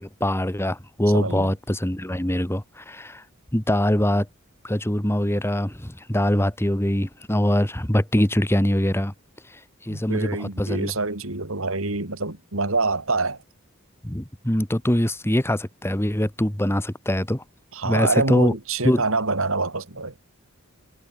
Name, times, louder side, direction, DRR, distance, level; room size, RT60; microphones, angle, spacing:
voice 1, 0.0-3.2 3.5-4.3 4.6-9.1 9.5-10.9 14.0-17.4 17.8-18.5 18.8-19.0, left 1 dB, 10° left, 1.8 m, -23 dB
voice 2, 1.1-1.5 9.9-13.4 17.8-20.1, right 3 dB, 70° right, 3.2 m, -26 dB
head